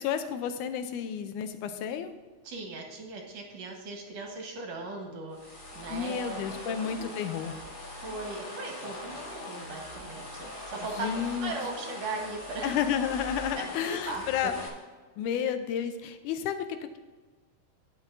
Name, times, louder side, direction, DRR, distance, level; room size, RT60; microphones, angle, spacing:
voice 1, 0.0-2.1 5.9-7.5 11.0-11.5 12.6-14.5 15.2-17.0, left 8 dB, 90° left, 9 dB, 2.2 m, -31 dB
voice 2, 2.4-7.1 7.9-12.8 13.3-14.5, right 3 dB, 65° right, 1 dB, 2.3 m, -39 dB
sound 1, 5.3-14.7, left 1 dB, 50° left, 0.5 m, -41 dB
19.0 x 6.3 x 2.7 m, 1.3 s
omnidirectional pair, 3.5 m